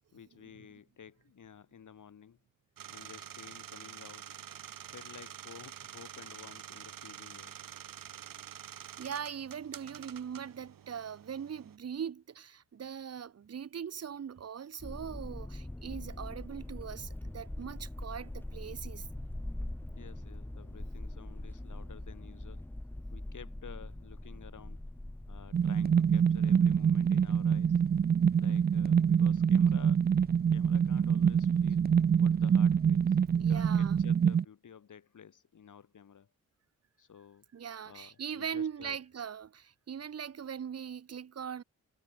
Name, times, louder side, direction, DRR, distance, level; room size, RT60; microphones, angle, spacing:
voice 1, 0.1-2.4 2.9-4.4 4.9-7.6 20.0-22.6 23.1-24.8 25.3-27.8 28.3-30.1 30.5-31.8 32.2-36.3 37.0-37.5 37.8-39.0, left 7 dB, 65° left, 3.1 m, -52 dB
sound 1, 2.8-11.8, right 9 dB, 80° right, 3.6 m, -47 dB
voice 2, 9.0-19.1 33.4-34.0 37.5-41.6, right 8 dB, 50° right, 1.1 m, -40 dB
sound 2, 14.8-34.1, left 1 dB, 5° left, 0.8 m, -44 dB
sound 3, 25.5-34.4, right 7 dB, 30° right, 0.4 m, -25 dB
cardioid pair, 60°, 33 cm